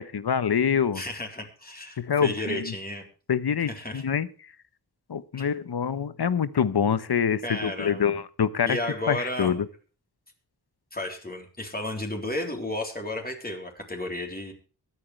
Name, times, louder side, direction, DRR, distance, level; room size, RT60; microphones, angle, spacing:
voice 1, 0.0-1.0 2.0-2.7 3.3-4.3 5.1-8.8 9.1-9.7, left 7 dB, 75° left, 14 dB, 1.1 m, -25 dB
voice 2, 0.9-3.0 3.6-4.0 5.3-5.6 7.4-8.2 8.7-9.6 10.9-14.5, left 1 dB, 25° left, 2 dB, 3.7 m, -33 dB
23.0 x 9.2 x 3.3 m, 0.38 s
wide cardioid pair, 105°, 39 cm